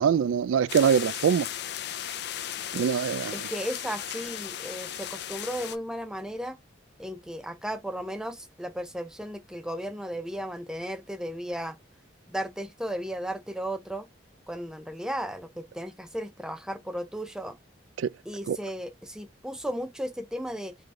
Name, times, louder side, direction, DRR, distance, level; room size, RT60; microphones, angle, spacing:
voice 1, 0.0-1.5 2.7-3.3 18.0-18.1 18.5-18.6, right 7 dB, 85° right, 0.3 m, -23 dB
sound 1, 0.7-5.8, left 11 dB, 55° left, 0.4 m, -36 dB
voice 2, 3.3-6.6 7.0-11.8 12.3-14.1 14.5-17.6 18.3-20.7, equal, 5° right, 0.5 m, -35 dB
3.8 x 3.2 x 2.9 m
head